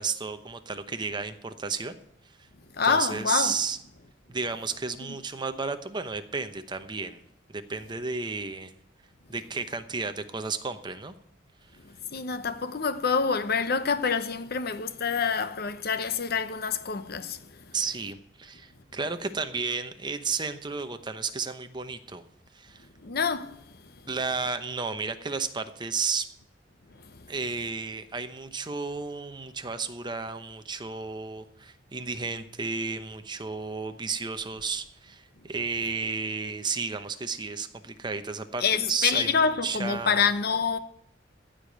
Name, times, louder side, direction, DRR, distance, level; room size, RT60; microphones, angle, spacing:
voice 1, 0.0-2.0 2.9-3.8 4.3-7.2 7.5-8.7 9.3-11.1 17.7-22.2 22.5-22.9 24.1-26.3 27.3-40.3, right 4 dB, 25° right, 0.9 m, -32 dB
voice 2, 2.7-3.6 12.1-17.5 23.0-23.6 23.8-23.9 27.0-27.3 38.6-40.8, left 5 dB, 55° left, 0.8 m, -27 dB
15.0 x 5.1 x 9.1 m
head